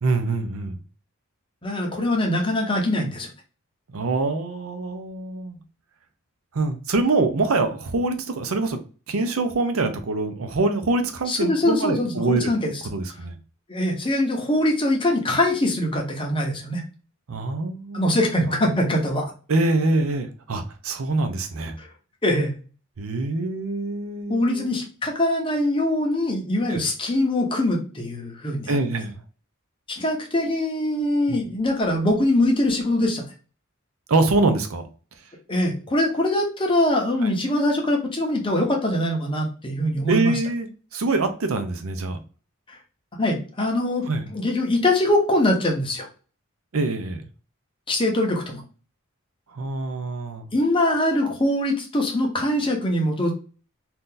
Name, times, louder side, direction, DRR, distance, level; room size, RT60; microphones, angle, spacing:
voice 1, 0.0-0.8 3.9-5.6 6.5-8.8 9.1-12.5 12.9-13.4 17.3-18.1 18.5-18.6 19.5-21.8 23.0-24.7 26.7-26.8 28.7-29.2 31.3-31.4 34.1-34.8 37.2-37.3 40.1-42.2 44.1-44.3 46.7-47.3 49.5-50.5, right 3 dB, 80° right, 0.6 m, -24 dB
voice 2, 1.6-3.3 11.3-12.7 13.7-16.8 17.9-19.3 21.8-21.9 22.2-22.5 24.3-28.8 29.9-33.2 35.5-40.3 42.7-42.8 43.2-44.0 44.3-46.1 47.9-48.6 50.5-53.3, left 1 dB, 25° left, 0.8 m, -23 dB
2.8 x 2.5 x 3.7 m
head